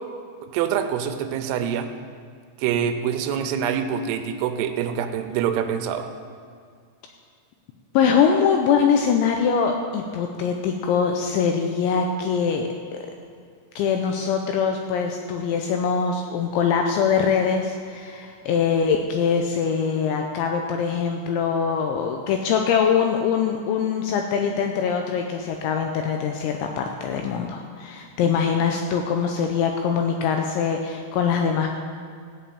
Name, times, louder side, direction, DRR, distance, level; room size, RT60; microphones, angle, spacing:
voice 1, 0.4-1.9 2.6-6.1, right 8 dB, 85° right, 8 dB, 3.4 m, -25 dB
voice 2, 7.9-13.0 13.8-31.8, left 6 dB, 85° left, 3 dB, 2.7 m, -23 dB
14.5 x 5.9 x 8.5 m, 2.2 s
omnidirectional pair, 5.9 m